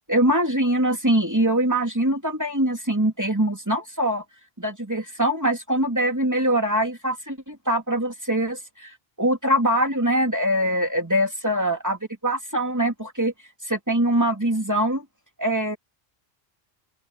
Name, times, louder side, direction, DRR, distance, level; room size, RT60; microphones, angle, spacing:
voice 1, 0.1-4.2 4.6-8.9 9.2-13.3 13.6-15.0 15.4-15.8, right 1 dB, 15° right, 2.8 m, -23 dB
open air
omnidirectional pair, 1.0 m